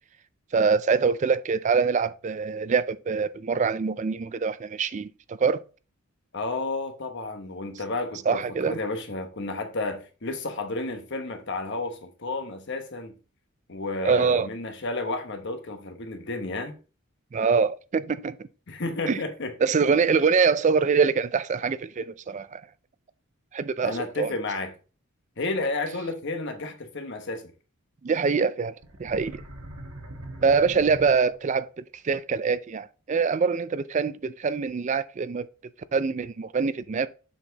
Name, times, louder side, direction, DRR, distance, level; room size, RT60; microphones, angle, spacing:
voice 1, 0.5-5.6 8.3-8.8 14.0-14.5 17.3-18.4 19.1-19.2 19.6-22.6 23.5-24.3 28.0-28.7 29.0-29.4 30.4-35.5 35.9-37.1, right 5 dB, 35° right, 0.3 m, -24 dB
voice 2, 6.3-13.1 13.7-16.8 18.7-19.5 23.8-24.7 25.4-27.5, left 2 dB, 55° left, 1.1 m, -32 dB
sound 1, 28.8-31.6, right 1 dB, 75° right, 1.4 m, -41 dB
7.0 x 4.5 x 3.9 m
head